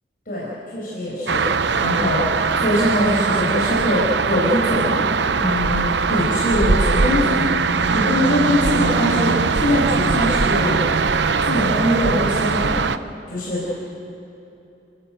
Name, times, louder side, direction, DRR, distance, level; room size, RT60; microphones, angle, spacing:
voice 1, 0.3-5.1 5.4-7.6 7.8-10.8 11.4-12.8 13.3-13.7, left 1 dB, 55° left, -6 dB, 5.7 m, -22 dB
sound 1, 1.3-13.0, right 4 dB, 85° right, 0.7 m, -20 dB
30.0 x 15.0 x 7.9 m, 2.8 s
head